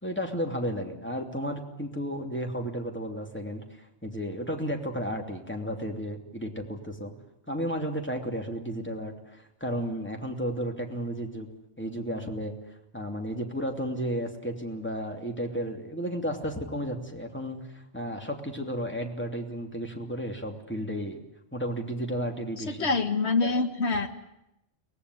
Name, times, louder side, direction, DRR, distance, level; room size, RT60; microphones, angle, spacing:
voice 1, 0.0-7.1 7.5-11.5 11.8-12.5 12.9-21.2 21.5-22.9 23.4-23.5, equal, 10° left, 3 dB, 3.0 m, -33 dB
voice 2, 22.6-24.1, left 3 dB, 60° left, 8 dB, 2.1 m, -26 dB
23.5 x 19.0 x 9.8 m, 0.85 s
omnidirectional pair, 1.3 m